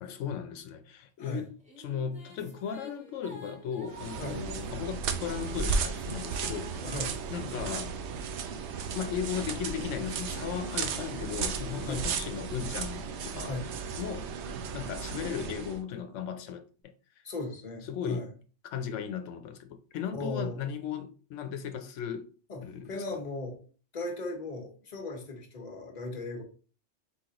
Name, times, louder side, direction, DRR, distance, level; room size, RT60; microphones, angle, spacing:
voice 1, 0.0-6.8 7.3-8.0 8.9-13.6 13.9-14.3 14.7-16.9 17.8-18.3 18.7-22.3 22.6-23.2, left 8 dB, 90° left, 0.9 m, -36 dB
sound 1, 1.3-8.3 8.9-12.7, left 1 dB, 5° right, 1.0 m, -52 dB
sound 2, 3.9-15.8, right 5 dB, 75° right, 0.9 m, -35 dB
voice 2, 6.8-7.2 11.8-12.1 13.4-13.7 17.2-18.3 20.1-20.6 22.5-23.6 23.9-26.4, left 2 dB, 40° left, 1.0 m, -37 dB
4.2 x 3.8 x 2.9 m
omnidirectional pair, 1.2 m